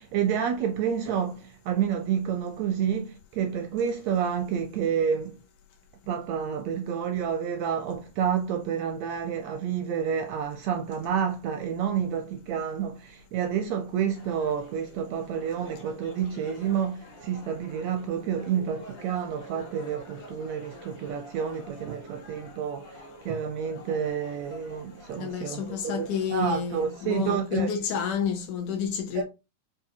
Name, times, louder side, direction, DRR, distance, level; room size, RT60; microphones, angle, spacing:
voice 1, 0.0-5.4 6.1-27.7 29.1-29.2, right 8 dB, 80° right, 1.6 m, -29 dB
sound 1, 14.1-27.3, equal, 60° left, 1.2 m, -48 dB
voice 2, 25.2-29.2, left 7 dB, 80° left, 2.3 m, -30 dB
5.6 x 2.6 x 2.7 m
omnidirectional pair, 3.5 m